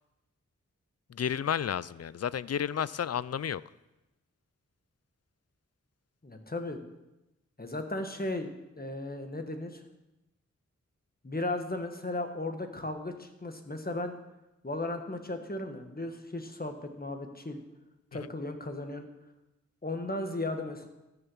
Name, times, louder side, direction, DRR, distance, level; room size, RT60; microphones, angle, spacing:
voice 1, 1.1-3.6 18.1-18.3, left 8 dB, 55° left, 19 dB, 0.4 m, -32 dB
voice 2, 6.2-6.8 7.6-8.5 8.8-9.8 11.2-14.1 14.6-17.6 18.1-19.1 19.8-20.9, left 2 dB, 30° left, 5 dB, 1.6 m, -35 dB
13.5 x 6.9 x 6.3 m, 0.97 s
wide cardioid pair, 50°, 30 cm